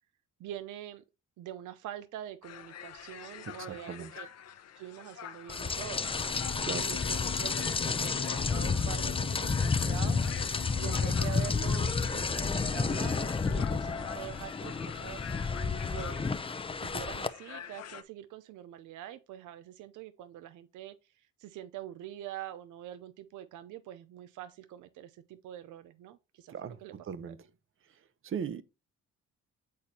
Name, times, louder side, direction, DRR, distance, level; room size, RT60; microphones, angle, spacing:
voice 1, 0.4-1.0 1.4-4.3 4.8-6.2 6.7-15.3 15.9-16.4 16.8-26.9 27.3-27.4, right 12 dB, 80° right, 0.6 m, -45 dB
sound 1, 2.4-18.0, left 9 dB, 55° left, 0.8 m, -46 dB
voice 2, 3.5-4.1 6.7-6.9 26.5-27.4 28.2-28.6, right 7 dB, 45° right, 0.8 m, -38 dB
Rain, 5.5-17.3, left 4 dB, 20° left, 0.5 m, -31 dB
sound 2, 5.8-13.6, left 14 dB, 85° left, 0.5 m, -46 dB
8.5 x 4.2 x 2.8 m
cardioid pair, 90°, 30 cm